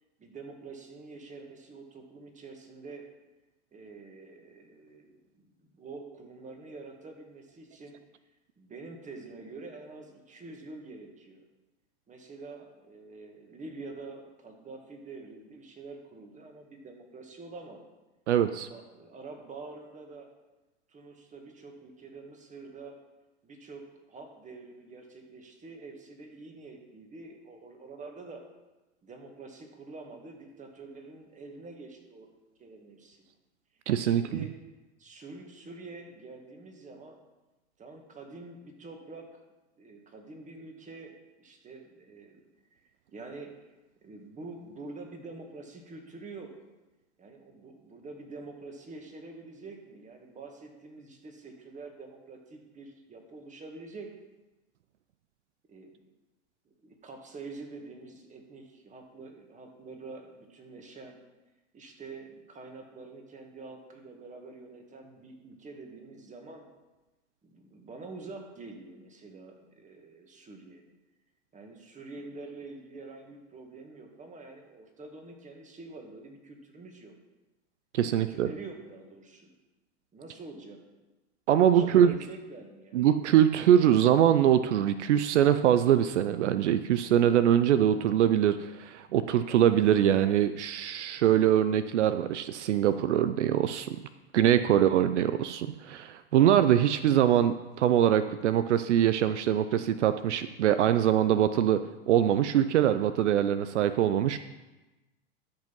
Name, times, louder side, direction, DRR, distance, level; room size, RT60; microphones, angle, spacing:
voice 1, 0.2-3.0 3.7-8.0 8.6-11.4 12.1-17.8 18.6-20.3 20.9-23.0 23.4-28.4 29.0-32.3 32.6-33.2 34.0-34.5 35.0-37.2 37.8-39.4 39.8-42.4 42.7-42.8 43.1-43.5 44.0-46.5 47.2-54.1 55.7-55.9 56.7-61.2 61.7-66.6 67.4-70.8 71.5-77.1 78.1-79.5 80.1-80.8 81.7-83.1, right 3 dB, 20° right, 3 dB, 2.0 m, -46 dB
voice 2, 18.3-18.7 33.9-34.5 77.9-78.5 81.5-82.1 82.9-94.0 94.3-104.4, right 10 dB, 75° right, 12 dB, 0.6 m, -23 dB
13.0 x 5.4 x 5.5 m, 1.1 s
hypercardioid pair, 100°, 35 cm